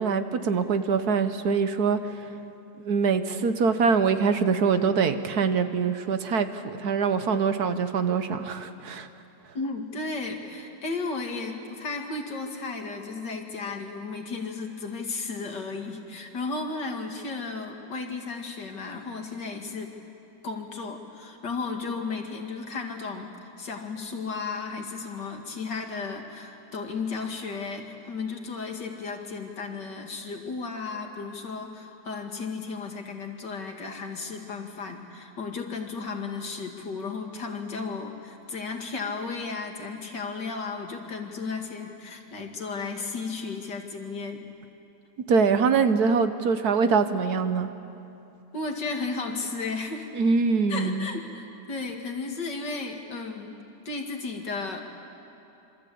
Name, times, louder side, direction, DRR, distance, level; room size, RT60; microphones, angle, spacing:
voice 1, 0.0-2.2 2.8-9.1 45.3-47.7 50.1-51.1, right 5 dB, 60° right, 10 dB, 1.4 m, -24 dB
voice 2, 9.5-19.9 20.4-44.5 48.5-50.1 50.7-53.6 53.9-54.8, left 4 dB, 70° left, 3 dB, 2.8 m, -34 dB
27.0 x 25.0 x 8.6 m, 2.8 s
omnidirectional pair, 2.0 m